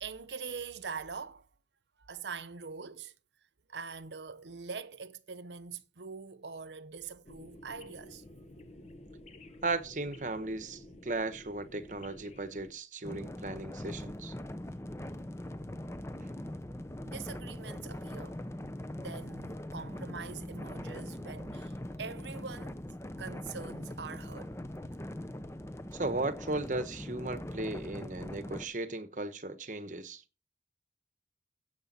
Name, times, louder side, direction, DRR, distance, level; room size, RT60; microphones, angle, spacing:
voice 1, 0.0-1.5 2.0-3.1 3.7-8.2 17.0-18.4 19.0-22.9 23.2-24.6, right 5 dB, 80° right, 0.8 m, -43 dB
sound 1, 7.2-12.7, left 1 dB, 40° left, 1.1 m, -52 dB
voice 2, 9.6-14.3 25.9-30.2, right 2 dB, 45° right, 1.0 m, -36 dB
sound 2, 13.0-28.7, left 1 dB, 15° left, 0.7 m, -41 dB
15.0 x 8.1 x 4.2 m
head